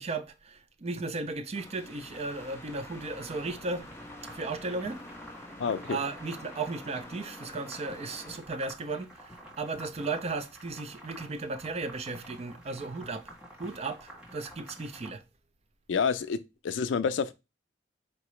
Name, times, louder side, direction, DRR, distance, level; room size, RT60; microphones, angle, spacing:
voice 1, 0.0-3.9 4.3-5.0 5.9-13.3 13.6-15.2, right 3 dB, 35° right, 0.4 m, -35 dB
sound 1, 1.6-8.4, left 1 dB, 15° left, 0.7 m, -47 dB
sound 2, 3.8-15.1, right 1 dB, 5° right, 1.6 m, -49 dB
voice 2, 5.6-6.0 15.9-16.4 16.6-17.3, left 6 dB, 80° left, 0.4 m, -28 dB
4.5 x 2.9 x 3.1 m
head